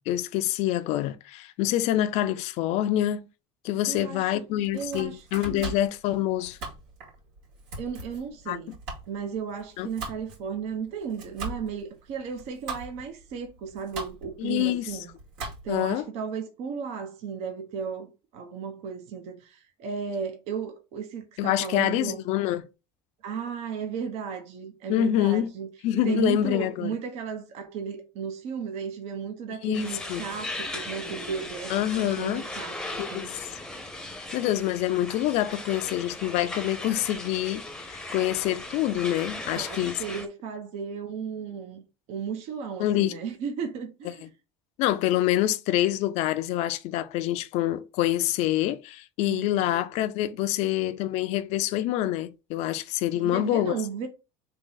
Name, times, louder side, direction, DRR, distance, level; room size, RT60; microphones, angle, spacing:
voice 1, 0.0-3.3 3.6-6.6 8.5-8.6 9.8-9.9 14.4-15.0 15.7-16.0 21.4-22.7 24.9-25.5 25.8-27.0 29.6-30.2 31.7-32.4 33.0-33.5 34.3-40.0 42.8-43.2 44.8-53.8, left 13 dB, 60° left, 0.5 m, -26 dB
voice 2, 3.9-4.5 4.7-5.7 7.8-8.7 9.1-15.1 15.6-22.2 23.2-25.7 26.0-33.3 39.5-41.8 42.1-44.3 49.2-49.7 53.1-54.1, right 6 dB, 65° right, 0.9 m, -35 dB
Domestic sounds home sounds, 4.6-15.9, right 3 dB, 85° right, 2.4 m, -41 dB
sound 1, 29.7-40.3, left 2 dB, 5° left, 0.7 m, -38 dB
3.7 x 3.1 x 3.9 m
cardioid pair, 130°, 12 cm